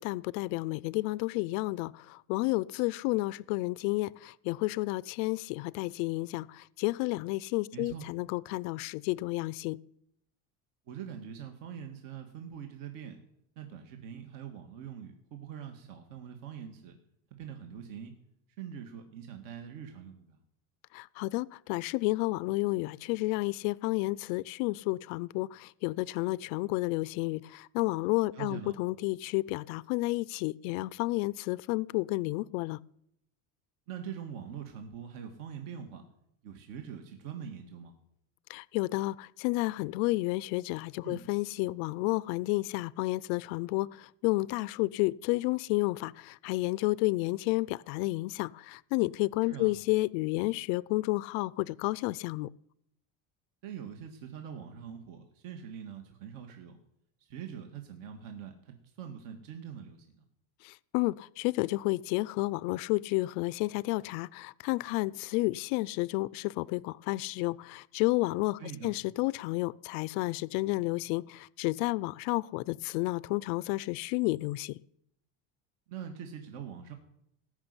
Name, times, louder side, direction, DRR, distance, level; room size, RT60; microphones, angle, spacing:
voice 1, 0.0-9.8 20.9-32.8 38.5-52.5 60.6-74.8, left 21 dB, 85° left, 0.6 m, -31 dB
voice 2, 7.7-8.1 10.9-13.2 13.6-16.9 17.4-18.1 18.6-20.4 28.3-28.8 33.9-36.0 36.4-37.9 41.0-41.2 49.5-49.7 53.6-56.8 57.2-60.2 68.6-68.9 75.9-76.9, right 8 dB, 55° right, 2.0 m, -43 dB
18.5 x 6.5 x 9.7 m
cardioid pair, 170°, 40 cm